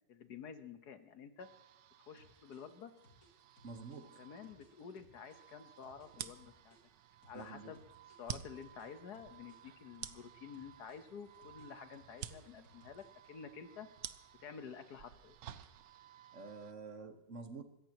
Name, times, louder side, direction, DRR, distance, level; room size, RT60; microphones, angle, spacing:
voice 1, 0.1-1.5 2.1-2.9 4.2-6.8 7.3-7.8 8.2-13.9 14.4-15.4, left 6 dB, 70° left, 9 dB, 1.6 m, -50 dB
sound 1, 1.4-16.7, right 10 dB, 90° right, 1.5 m, -60 dB
sound 2, 2.2-6.8 7.2-10.3 10.5-13.3, left 1 dB, 55° left, 7.7 m, -66 dB
voice 2, 3.6-4.2 7.3-7.7 16.3-17.6, right 4 dB, 50° right, 7 dB, 1.5 m, -48 dB
sound 3, 6.1-16.0, right 10 dB, 70° right, 1.2 m, -50 dB
26.0 x 14.5 x 3.0 m, 0.92 s
omnidirectional pair, 1.8 m